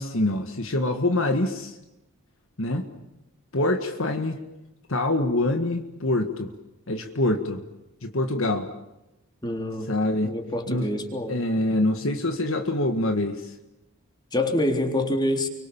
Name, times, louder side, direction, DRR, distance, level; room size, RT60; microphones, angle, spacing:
voice 1, 0.0-1.8 2.6-2.9 3.5-4.4 4.9-6.5 6.9-7.6 8.0-8.7 9.9-10.3 10.7-10.9 11.3-13.5, left 1 dB, 60° left, 6 dB, 1.8 m, -25 dB
voice 2, 9.4-9.9 10.2-11.4 14.3-15.5, left 1 dB, 20° left, 4 dB, 3.6 m, -26 dB
29.5 x 24.5 x 7.1 m, 0.98 s
head